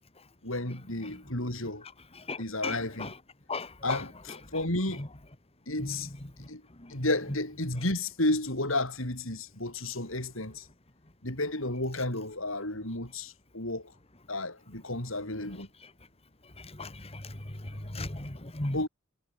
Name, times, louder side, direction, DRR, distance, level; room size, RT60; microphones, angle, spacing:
voice 1, 0.4-1.8 2.4-3.1 3.8-5.0 5.7-6.1 6.5-6.6 6.9-10.7 11.2-13.9 14.3-15.7 18.7-18.9, left 2 dB, 65° left, 6.9 m, -32 dB
voice 2, 2.3-3.1 3.5-4.0 5.0-5.1 5.8-6.0 16.8-17.2 17.9-18.8, left 2 dB, 30° left, 2.0 m, -36 dB
head